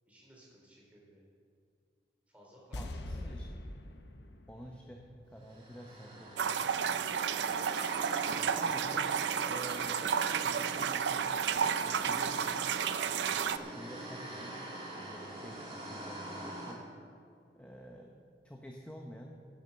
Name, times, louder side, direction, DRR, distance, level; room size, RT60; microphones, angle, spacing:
voice 1, 0.1-1.3 2.3-3.3 8.2-9.0, equal, 10° right, -4 dB, 3.5 m, -57 dB
sound 1, 2.7-5.9 6.2-6.3, left 1 dB, 80° left, 0.9 m, -44 dB
voice 2, 2.8-3.4 4.5-6.3 6.6-7.0 8.4-9.1 9.4-11.3 11.8-12.4 13.3-14.5 14.9-16.8 17.5-18.1 18.4-19.3, equal, 10° left, 0 dB, 0.8 m, -49 dB
sound 2, 5.4-16.7, right 1 dB, 35° right, 2.7 m, -44 dB
sound 3, 6.4-13.6, right 7 dB, 85° right, 0.5 m, -32 dB
16.5 x 7.2 x 6.8 m, 2.2 s
head